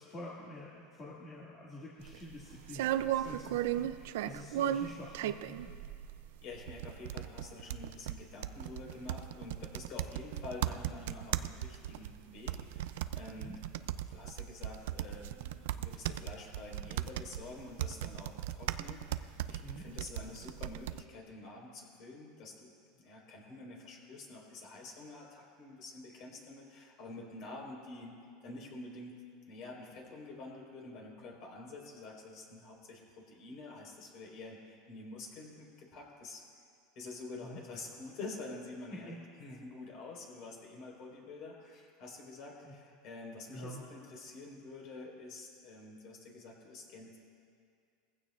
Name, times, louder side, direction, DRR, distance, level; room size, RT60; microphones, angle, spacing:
voice 1, 0.0-5.6 13.4-13.6 19.6-19.8 37.4-37.6 38.9-39.2 42.6-42.7 43.5-43.8, left 1 dB, 30° left, -6 dB, 2.0 m, -47 dB
sound 1, 2.0-21.0, right 12 dB, 80° right, 0.4 m, -37 dB
voice 2, 6.4-13.6 14.0-28.2 28.4-29.2 29.5-36.4 36.9-39.1 39.4-47.2, left 3 dB, 50° left, -1 dB, 4.3 m, -48 dB
21.5 x 15.5 x 2.5 m, 2.3 s
supercardioid pair, 135°, 0 cm